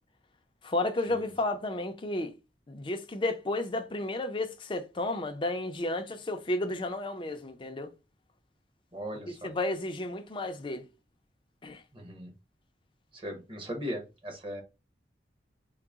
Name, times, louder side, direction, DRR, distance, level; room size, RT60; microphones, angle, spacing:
voice 1, 0.6-2.4 2.7-7.9 9.3-10.9 11.6-11.8, left 2 dB, 30° left, 0.5 m, -32 dB
voice 2, 8.9-9.5 11.9-12.3 13.2-14.6, equal, 30° right, 1.0 m, -38 dB
3.8 x 2.1 x 3.5 m
head